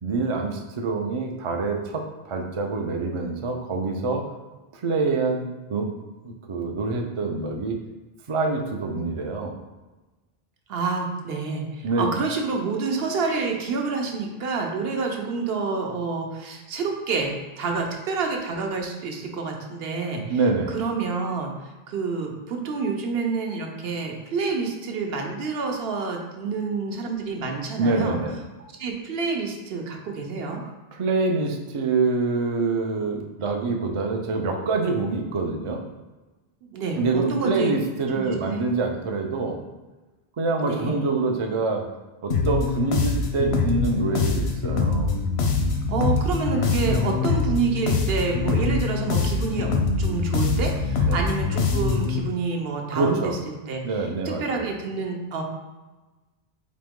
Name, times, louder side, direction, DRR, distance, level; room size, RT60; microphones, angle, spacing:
voice 1, 0.0-4.2 4.7-5.9 6.2-7.8 8.3-9.6 11.8-12.1 20.3-20.8 27.8-28.4 30.6-35.8 37.0-39.6 40.4-41.8 42.2-45.2 46.8-47.2 51.0-51.2 52.9-53.4 53.8-54.7, right 3 dB, 45° right, 2 dB, 0.4 m, -26 dB
voice 2, 10.7-20.4 20.7-21.5 21.9-28.2 28.7-30.6 36.6-37.7 38.1-38.6 40.6-41.0 45.9-53.4 53.7-53.8 54.2-55.4, right 4 dB, 70° right, 2 dB, 0.9 m, -28 dB
sound 1, 42.3-52.2, left 4 dB, 85° left, 0.9 m, -24 dB
4.2 x 2.9 x 3.6 m, 1.1 s
omnidirectional pair, 1.1 m